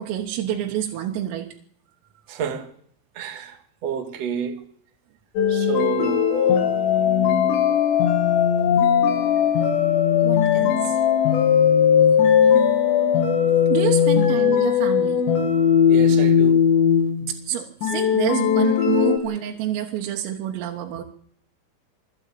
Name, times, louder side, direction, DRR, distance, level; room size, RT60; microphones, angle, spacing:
voice 1, 0.0-1.5 10.2-11.0 13.7-15.2 17.2-21.0, right 11 dB, 90° right, 3.9 m, -28 dB
voice 2, 2.3-2.7 3.1-4.6 5.5-7.4 12.4-12.5 14.0-14.1 15.9-16.6, right 6 dB, 60° right, 1.7 m, -31 dB
sound 1, 5.4-17.3 17.8-19.2, left 8 dB, 65° left, 4.1 m, -18 dB
21.0 x 15.0 x 8.4 m
omnidirectional pair, 5.9 m